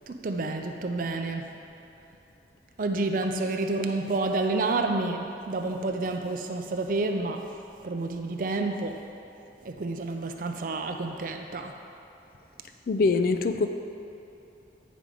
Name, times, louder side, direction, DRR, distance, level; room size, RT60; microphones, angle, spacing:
voice 1, 0.1-1.5 2.8-7.5 7.8-9.1 9.6-11.7, right 3 dB, 50° right, 5 dB, 0.4 m, -29 dB
voice 2, 12.9-13.7, left 4 dB, 55° left, 8 dB, 0.4 m, -23 dB
9.3 x 5.0 x 4.9 m, 2.9 s
head